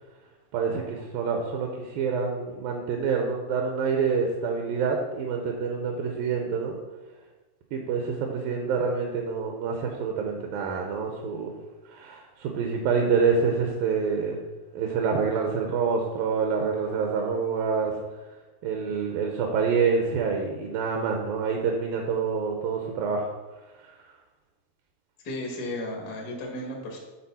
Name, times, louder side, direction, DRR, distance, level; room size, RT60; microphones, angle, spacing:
voice 1, 0.5-6.8 7.7-11.5 11.9-14.4 14.7-18.0 18.6-23.3 23.8-23.9, right 5 dB, 75° right, 2 dB, 2.4 m, -27 dB
voice 2, 25.2-27.0, left 1 dB, 70° left, -1 dB, 0.9 m, -34 dB
10.5 x 3.9 x 4.2 m, 1.2 s
omnidirectional pair, 4.3 m